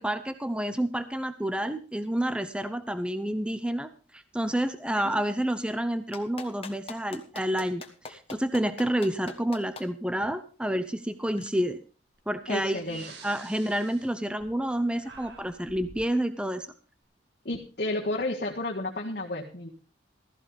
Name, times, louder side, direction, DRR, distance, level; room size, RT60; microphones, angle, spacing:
voice 1, 0.0-11.8 12.3-16.7, right 1 dB, 5° right, 11 dB, 0.6 m, -29 dB
Clapping, 6.1-9.8 11.4-11.5, left 4 dB, 30° left, 1.4 m, -41 dB
Breathing, 12.2-12.3 12.8-14.8 15.0-16.1, right 4 dB, 65° right, 2.2 m, -49 dB
voice 2, 12.5-13.0 17.5-19.7, left 2 dB, 50° left, -2 dB, 1.7 m, -31 dB
15.0 x 14.5 x 3.3 m, 0.36 s
head